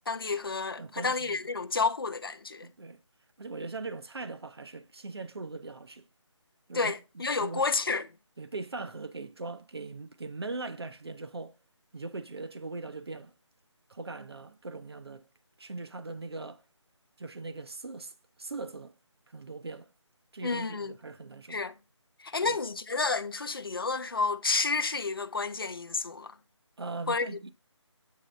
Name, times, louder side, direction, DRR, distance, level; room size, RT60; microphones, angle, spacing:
voice 1, 0.1-2.7 6.7-8.1 20.4-20.9 21.5-21.7 22.2-26.4 27.1-27.5, left 4 dB, 50° left, 0.4 m, -30 dB
voice 2, 0.8-1.4 2.6-3.0 3.4-6.0 6.7-7.7 8.4-11.6 11.9-13.3 13.9-15.2 15.6-16.6 17.2-18.1 18.4-18.9 19.3-19.9 20.3-21.6 22.4-22.6 26.8-27.5, right 3 dB, 55° right, 0.7 m, -40 dB
7.4 x 3.3 x 5.1 m
figure-of-eight pair, 180°, 16 cm